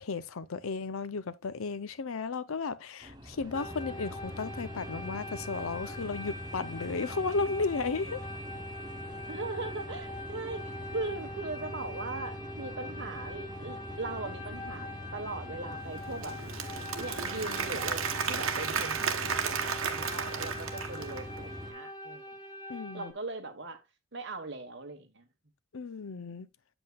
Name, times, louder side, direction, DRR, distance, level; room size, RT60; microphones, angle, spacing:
voice 1, 0.0-8.2 22.7-23.1 25.7-26.5, left 4 dB, 80° left, 0.6 m, -34 dB
sound 1, 3.0-21.7, equal, 20° right, 0.8 m, -44 dB
sound 2, 3.5-23.1, left 1 dB, 20° left, 1.0 m, -43 dB
voice 2, 9.3-16.4 17.0-22.2 22.9-23.8 24.1-25.2, right 3 dB, 55° right, 1.3 m, -39 dB
Applause / Crowd, 16.0-21.4, right 6 dB, 80° right, 1.1 m, -33 dB
8.0 x 7.8 x 2.3 m
head